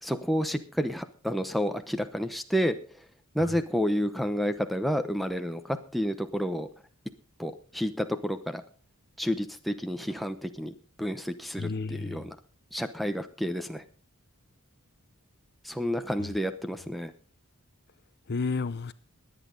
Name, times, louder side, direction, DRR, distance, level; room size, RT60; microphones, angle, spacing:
voice 1, 0.0-2.8 3.3-6.7 7.4-8.6 9.2-12.4 12.7-13.8 15.6-17.1, equal, ahead, 0.8 m, -30 dB
voice 2, 11.6-12.3 16.2-16.3 18.3-18.9, left 4 dB, 50° left, 0.6 m, -32 dB
21.5 x 8.4 x 3.9 m
head